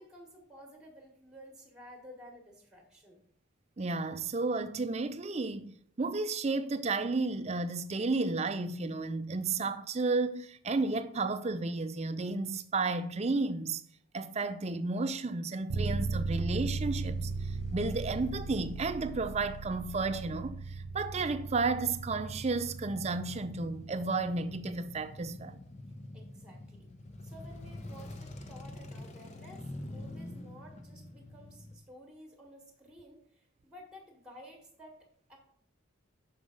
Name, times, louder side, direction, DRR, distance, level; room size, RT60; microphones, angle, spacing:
voice 1, 0.0-3.2 26.1-26.9 27.2-35.4, equal, 5° right, 1.3 m, -53 dB
voice 2, 3.8-13.8 14.1-25.6, right 3 dB, 30° right, 0.4 m, -32 dB
sound 1, 15.7-25.4, right 3 dB, 80° right, 0.5 m, -38 dB
Male speech man speaking / Motorcycle / Idling, 15.8-31.8, left 1 dB, 35° left, 0.7 m, -48 dB
6.2 x 5.4 x 5.0 m
head